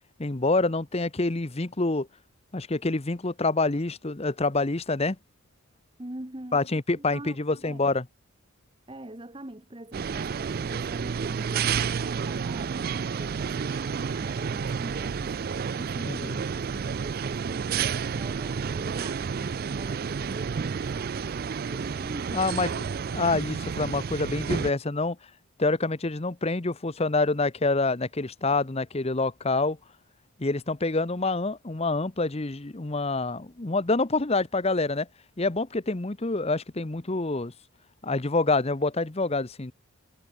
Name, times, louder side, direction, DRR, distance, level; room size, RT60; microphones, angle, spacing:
voice 1, 0.2-2.1 2.5-5.2 6.5-8.0 16.1-16.4 22.3-22.8 23.1-25.2 25.6-29.8 30.4-35.1 35.4-37.5 38.0-39.7, left 3 dB, 25° left, 0.8 m, -27 dB
voice 2, 6.0-6.7 7.1-7.9 8.9-22.9, right 1 dB, 20° right, 1.3 m, -44 dB
sound 1, 9.9-24.7, right 6 dB, 40° right, 0.3 m, -30 dB
head